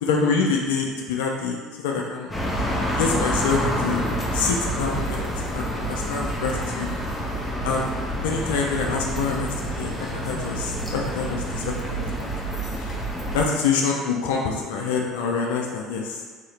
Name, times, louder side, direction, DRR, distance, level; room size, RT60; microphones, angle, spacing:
voice 1, 0.0-2.3 3.0-4.0 4.3-6.9 7.6-7.9 8.2-12.3 12.8-12.9 13.3-16.2, left 5 dB, 80° left, 0 dB, 0.5 m, -26 dB
sound 1, 2.3-13.4, equal, 10° left, 0.9 m, -28 dB
3.8 x 2.8 x 3.2 m, 1.5 s
hypercardioid pair, 70°, 0 cm